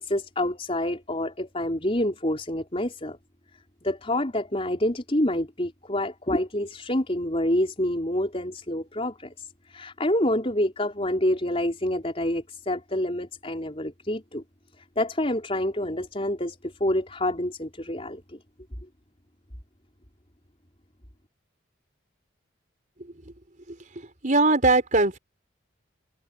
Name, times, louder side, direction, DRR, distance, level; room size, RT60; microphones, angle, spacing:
voice 1, 0.0-3.2 3.8-14.4 15.0-18.4, left 1 dB, 30° left, 4.5 m, -27 dB
voice 2, 24.2-25.2, right 2 dB, 40° right, 4.5 m, -20 dB
open air
head